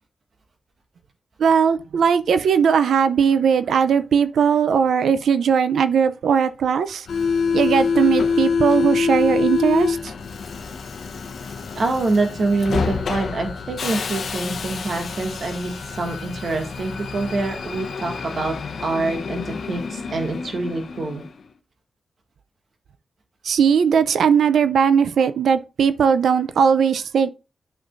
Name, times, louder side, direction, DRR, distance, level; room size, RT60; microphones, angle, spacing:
voice 1, 1.4-7.1 7.5-10.1 23.4-27.3, right 7 dB, 85° right, 0.5 m, -18 dB
Subway metro underground, 7.1-21.4, left 5 dB, 75° left, 0.9 m, -26 dB
voice 2, 11.7-18.5 18.8-21.2, right 3 dB, 65° right, 2.1 m, -25 dB
9.4 x 5.7 x 2.6 m
cardioid pair, 60°, 0 cm